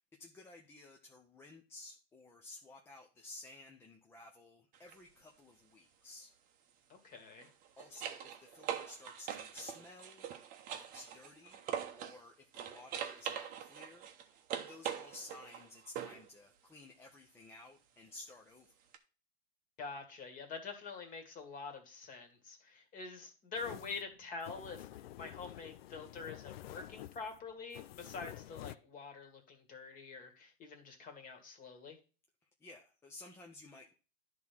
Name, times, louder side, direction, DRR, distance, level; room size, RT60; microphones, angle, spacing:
voice 1, 0.0-6.3 7.8-11.6 11.9-18.7 32.6-33.9, left 2 dB, 10° left, 1 dB, 0.5 m, -54 dB
sound 1, 4.7-5.0 7.3-12.2 12.5-16.3 18.9-19.0, right 9 dB, 25° right, 0.8 m, -43 dB
voice 2, 6.9-7.5 19.8-32.0, left 4 dB, 25° left, 5 dB, 1.8 m, -46 dB
sound 2, 23.6-28.8, left 13 dB, 65° left, 0.5 m, -50 dB
10.5 x 3.7 x 5.9 m, 0.35 s
hypercardioid pair, 135°, 32 cm